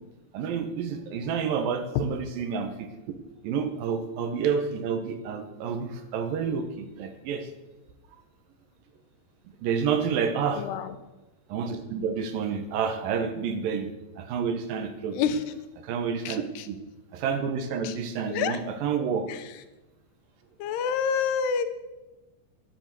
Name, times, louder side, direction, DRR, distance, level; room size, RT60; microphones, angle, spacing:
voice 1, 0.3-2.9 3.4-7.5 9.6-10.7 11.5-13.9 14.2-15.2 15.8-16.4 16.7-16.8 17.1-19.3, right 6 dB, 70° right, 8 dB, 2.5 m, -29 dB
voice 2, 10.6-10.9 15.1-15.5 16.3-16.7 17.8-18.0 18.3-18.6 19.3-19.6 20.6-21.7, left 6 dB, 90° left, 10 dB, 3.0 m, -28 dB
10.5 x 8.7 x 8.1 m, 1.1 s
omnidirectional pair, 4.6 m